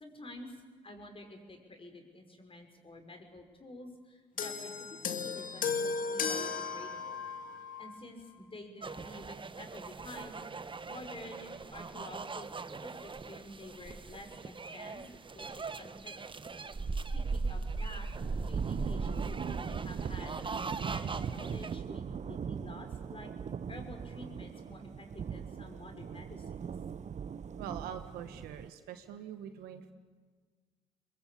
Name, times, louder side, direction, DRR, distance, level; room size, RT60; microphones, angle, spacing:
voice 1, 0.0-7.2 7.8-16.3 16.6-18.1 18.4-23.3 23.7-26.6, left 1 dB, 35° left, 5 dB, 5.6 m, -50 dB
sound 1, 4.4-8.0 8.9-9.0, left 5 dB, 60° left, 2.1 m, -35 dB
sound 2, 8.8-21.8, right 4 dB, 30° right, 1.2 m, -39 dB
Thunder / Rain, 18.2-28.7, right 7 dB, 50° right, 0.9 m, -40 dB
voice 2, 27.6-29.9, right 9 dB, 85° right, 8 dB, 1.6 m, -44 dB
22.0 x 21.5 x 8.6 m, 1.5 s
hypercardioid pair, 50°, 16 cm